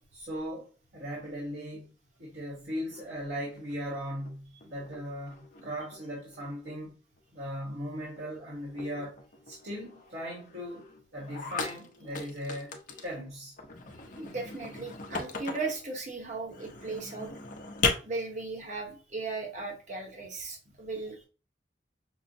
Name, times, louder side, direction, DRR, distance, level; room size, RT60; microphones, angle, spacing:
voice 1, 0.1-1.9 2.2-7.0 7.3-9.2 9.4-10.8 11.1-12.8 13.0-13.5, equal, 65° right, 1.3 m, -38 dB
sound 1, 2.9-4.3 4.6-6.0 6.3-6.9 7.2-7.5 7.8-7.9 8.2-8.3 8.6-13.2 13.6-15.8 16.4-17.9, left 4 dB, 50° left, 0.6 m, -38 dB
voice 2, 14.2-17.3 18.0-21.3, right 3 dB, 45° right, 0.9 m, -37 dB
5.4 x 2.1 x 2.6 m
head